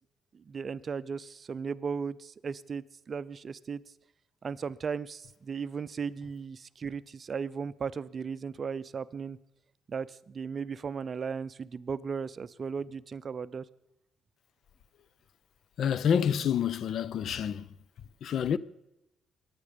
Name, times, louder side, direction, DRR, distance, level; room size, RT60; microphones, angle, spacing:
voice 1, 0.3-3.8 4.4-9.4 9.9-13.6, right 6 dB, 45° right, 0.5 m, -36 dB
voice 2, 15.8-17.6 18.2-18.6, left 8 dB, 65° left, 0.6 m, -28 dB
22.5 x 9.5 x 5.2 m
cardioid pair, 90°, 0 cm